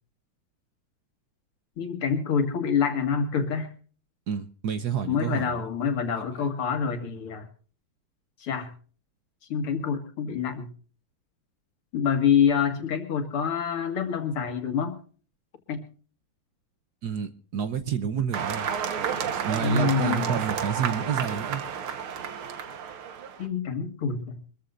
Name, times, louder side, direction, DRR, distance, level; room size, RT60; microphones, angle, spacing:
voice 1, 1.8-3.7 5.1-7.5 8.4-8.7 9.5-10.7 11.9-14.9 15.7-15.8 19.6-20.3 23.4-24.4, left 6 dB, 80° left, 5 dB, 2.9 m, -26 dB
voice 2, 4.3-5.6 6.1-6.5 17.0-18.7 19.1-21.6, right 7 dB, 60° right, 10 dB, 1.2 m, -30 dB
sound 1, 18.3-23.5, right 7 dB, 75° right, 2.1 m, -31 dB
24.5 x 14.5 x 2.6 m, 0.40 s
omnidirectional pair, 2.4 m